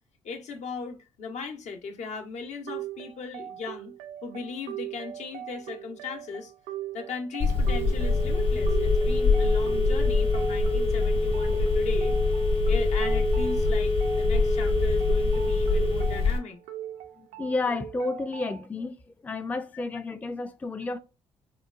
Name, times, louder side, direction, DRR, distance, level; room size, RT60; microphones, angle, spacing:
voice 1, 0.2-4.0 4.2-6.5 6.9-12.2 12.7-16.6 19.7-19.8, left 5 dB, 65° left, 0.7 m, -38 dB
sound 1, 2.7-18.7, right 12 dB, 85° right, 0.4 m, -40 dB
Telephone, 7.4-16.4, left 3 dB, 45° left, 0.9 m, -24 dB
voice 2, 17.4-18.9 19.2-21.0, left 3 dB, 10° left, 0.3 m, -31 dB
3.8 x 2.2 x 2.4 m
supercardioid pair, 70°, 13 cm